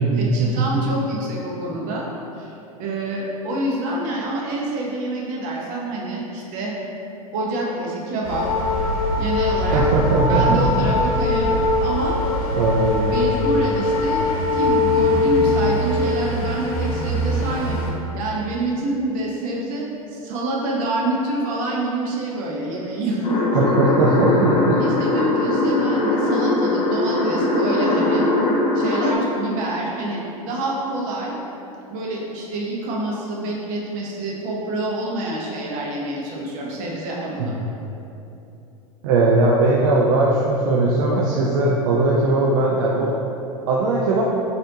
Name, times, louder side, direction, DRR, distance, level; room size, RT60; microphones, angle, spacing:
voice 1, 0.1-2.1 2.4-2.5 2.8-6.8 7.3-8.5 9.2-9.8 10.3-12.2 13.1-17.9 18.1-19.9 20.1-23.7 24.8-28.3 28.7-31.4 31.9-37.6, right 1 dB, 45° right, -3 dB, 0.8 m, -27 dB
sound 1, 8.2-17.9, left 1 dB, 75° left, 0.6 m, -21 dB
voice 2, 9.7-10.6 12.5-13.1 23.5-24.8 37.4-37.5 39.0-43.1 43.7-44.2, right 2 dB, 65° right, -3 dB, 0.4 m, -19 dB
sound 2, 23.2-29.1, left 2 dB, 25° left, 0.6 m, -20 dB
4.1 x 2.6 x 2.7 m, 2.9 s
hypercardioid pair, 90°, 19 cm